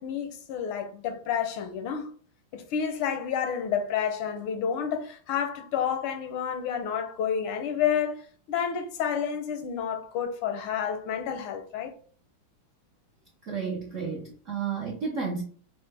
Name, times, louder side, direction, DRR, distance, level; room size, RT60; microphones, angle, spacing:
voice 1, 0.0-2.1 2.5-11.9, left 8 dB, 85° left, 1.6 m, -30 dB
voice 2, 13.4-15.4, right 5 dB, 70° right, 0.7 m, -32 dB
5.5 x 2.1 x 3.3 m
omnidirectional pair, 2.3 m